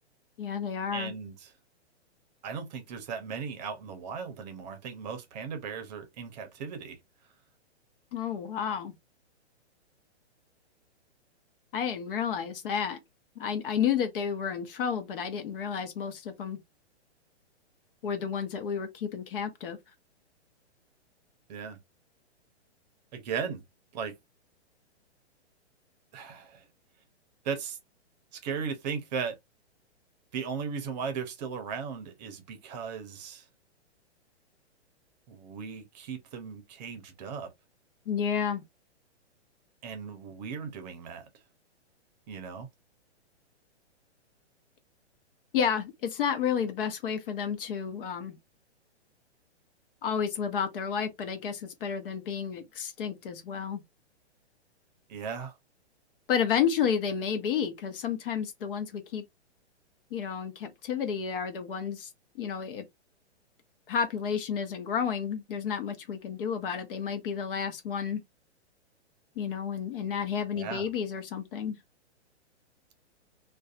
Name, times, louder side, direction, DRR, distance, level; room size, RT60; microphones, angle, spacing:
voice 1, 0.4-1.1 8.1-8.9 11.7-13.0 13.4-16.6 18.0-19.8 38.1-38.6 45.5-48.4 50.0-53.8 56.3-59.2 60.1-62.8 63.9-68.2 69.4-71.8, left 7 dB, 50° left, 0.8 m, -31 dB
voice 2, 0.9-1.5 2.4-7.0 21.5-21.8 23.1-23.6 23.9-24.1 26.1-26.7 27.4-27.8 28.3-29.4 30.3-33.5 35.3-37.5 39.8-41.3 42.3-42.7 55.1-55.6 70.5-70.9, right 6 dB, 40° right, 0.7 m, -37 dB
2.5 x 2.3 x 2.4 m
hypercardioid pair, 140°, 34 cm